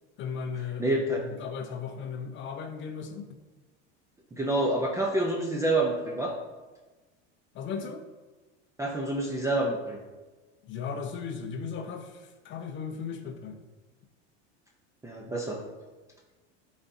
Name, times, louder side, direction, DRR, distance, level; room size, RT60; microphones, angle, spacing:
voice 1, 0.2-3.4 7.5-8.0 10.6-13.6, left 6 dB, 35° left, 6 dB, 0.7 m, -36 dB
voice 2, 0.8-1.2 4.3-6.3 8.8-10.0 15.0-15.6, right 2 dB, 10° right, -1 dB, 0.6 m, -27 dB
10.5 x 4.2 x 2.7 m, 1.2 s
supercardioid pair, 135°, 34 cm